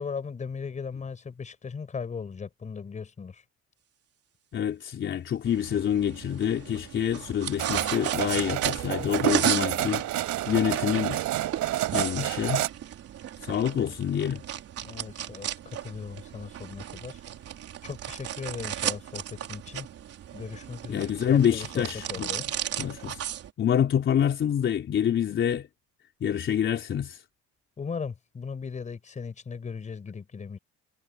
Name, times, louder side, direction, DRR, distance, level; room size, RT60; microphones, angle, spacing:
voice 1, 0.0-3.4 14.8-17.2 17.8-19.9 20.3-22.4 27.8-30.6, left 5 dB, 25° left, 5.2 m, -38 dB
voice 2, 4.5-10.0 10.5-11.2 11.9-12.6 13.4-14.4 20.9-22.3 22.8-23.2 23.6-25.7 26.2-27.2, left 9 dB, 40° left, 3.8 m, -26 dB
sound 1, 5.4-23.5, right 10 dB, 50° right, 3.7 m, -35 dB
sound 2, 7.6-12.7, right 14 dB, 65° right, 6.2 m, -29 dB
cardioid pair, 175°, 31 cm